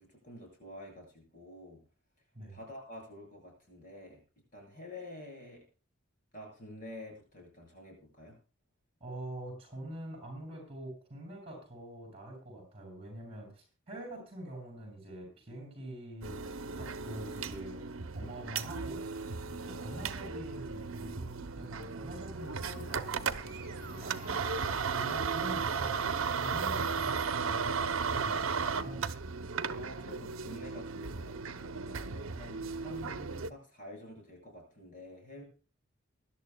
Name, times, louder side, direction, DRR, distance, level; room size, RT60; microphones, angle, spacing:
voice 1, 0.0-1.8 2.5-4.2 4.5-5.6 6.3-8.4 29.8-35.4, left 1 dB, 40° left, 1 dB, 7.7 m, -49 dB
voice 2, 9.0-16.4 16.8-17.9 18.1-19.0 19.4-24.4 24.9-29.1, right 1 dB, 30° right, 1 dB, 7.9 m, -45 dB
sound 1, 16.2-33.5, right 5 dB, 75° right, 0.8 m, -35 dB
Human voice / Cheering, 22.0-28.6, left 1 dB, 65° left, 7.7 m, -54 dB
sound 2, 22.5-28.8, right 4 dB, 50° right, 2.9 m, -54 dB
23.5 x 11.5 x 2.3 m, 0.35 s
head